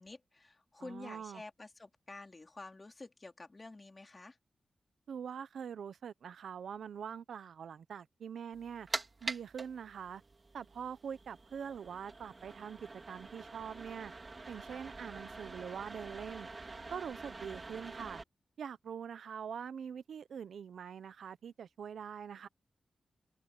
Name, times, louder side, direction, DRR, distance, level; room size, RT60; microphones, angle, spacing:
voice 1, 0.0-4.4, left 2 dB, 30° left, 3.6 m, -50 dB
voice 2, 0.8-1.4 5.1-8.9 9.2-10.2 10.5-14.1 14.5-16.5 16.9-18.2 18.6-22.5, right 7 dB, 85° right, 0.9 m, -44 dB
sound 1, 8.5-18.2, right 3 dB, 35° right, 2.1 m, -46 dB
cardioid pair, 80°, 0 cm